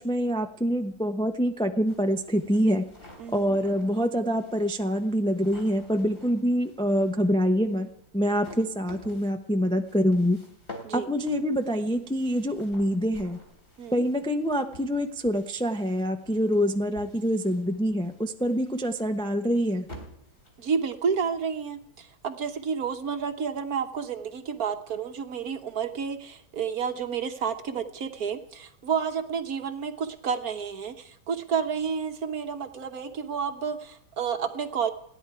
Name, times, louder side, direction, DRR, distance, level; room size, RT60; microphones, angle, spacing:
voice 1, 0.0-2.8 3.3-10.4 10.9-13.4 13.9-19.9, equal, 5° left, 5 dB, 0.4 m, -25 dB
sound 1, 1.9-21.1, left 1 dB, 25° left, 3.7 m, -50 dB
voice 2, 3.2-3.6 10.8-11.1 13.8-14.0 20.6-34.9, right 6 dB, 55° right, 7 dB, 1.4 m, -30 dB
30.0 x 10.5 x 4.7 m, 0.74 s
omnidirectional pair, 2.1 m